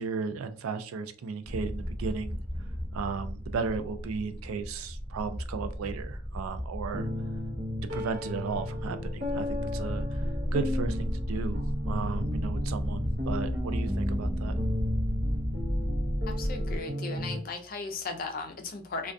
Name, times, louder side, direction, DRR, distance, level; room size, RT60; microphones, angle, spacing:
voice 1, 0.0-2.4 2.9-7.1 7.9-14.5, right 5 dB, 90° right, 0.3 m, -35 dB
sound 1, 1.4-16.8, equal, 10° right, 0.9 m, -33 dB
sound 2, 6.9-17.4, left 1 dB, 65° right, 0.7 m, -34 dB
voice 2, 16.3-19.1, left 4 dB, 45° left, 0.4 m, -37 dB
2.3 x 2.2 x 2.5 m
head